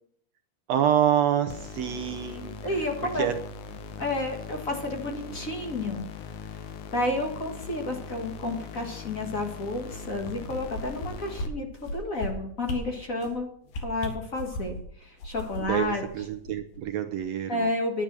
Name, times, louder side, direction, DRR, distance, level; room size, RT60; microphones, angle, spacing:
voice 1, 0.7-3.4 15.6-17.7, right 9 dB, 75° right, 7 dB, 1.5 m, -27 dB
sound 1, 1.5-11.5, left 5 dB, 70° left, 2.3 m, -41 dB
voice 2, 2.6-3.3 4.0-6.0 6.9-13.5 13.8-16.0 17.5-18.0, left 2 dB, 35° left, 3 dB, 1.4 m, -31 dB
sound 2, 10.3-11.1 11.4-11.5 11.8-12.3 12.6-12.8 13.2-13.4 13.7-14.8 15.2-16.8 17.1-17.2, left 1 dB, 90° left, 3.6 m, -35 dB
10.5 x 10.5 x 6.1 m, 0.65 s
omnidirectional pair, 3.8 m